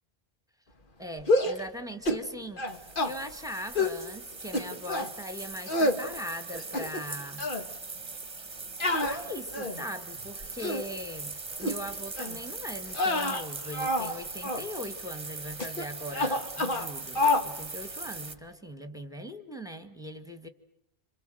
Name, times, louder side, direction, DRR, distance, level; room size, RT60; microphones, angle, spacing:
voice 1, 1.0-2.6 3.0-7.5 9.0-20.5, left 1 dB, 5° right, 9 dB, 1.7 m, -40 dB
sound 1, 1.2-1.6 2.1-2.3 2.6-3.1 3.8-4.0 4.5-5.1 5.7-6.0 6.5-7.1 7.4-7.6 8.8-9.9 10.4-10.9 11.6-11.8 12.2-12.4 12.9-14.1 14.4-14.7 15.6-15.9 16.1-16.9 17.2-17.5, left 2 dB, 55° left, 1.8 m, -28 dB
sound 2, 2.7-18.3, right 3 dB, 35° right, 1.2 m, -41 dB
27.5 x 26.5 x 7.7 m, 0.73 s
omnidirectional pair, 1.1 m